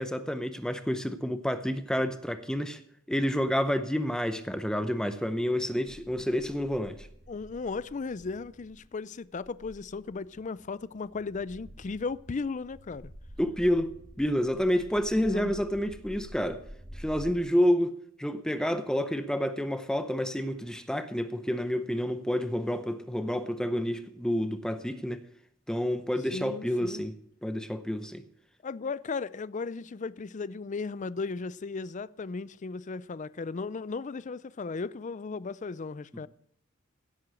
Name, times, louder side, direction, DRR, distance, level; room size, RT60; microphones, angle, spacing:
voice 1, 0.0-2.8 3.1-7.1 13.4-13.9 14.2-16.6 16.9-17.9 18.2-25.2 25.7-27.1 27.4-28.2, equal, 5° left, 0.7 m, -29 dB
sound 1, 5.8-17.4, equal, 20° right, 2.0 m, -49 dB
voice 2, 7.3-13.1 15.1-15.6 26.3-27.0 28.6-36.3, left 4 dB, 35° left, 0.4 m, -36 dB
16.5 x 7.9 x 6.3 m
head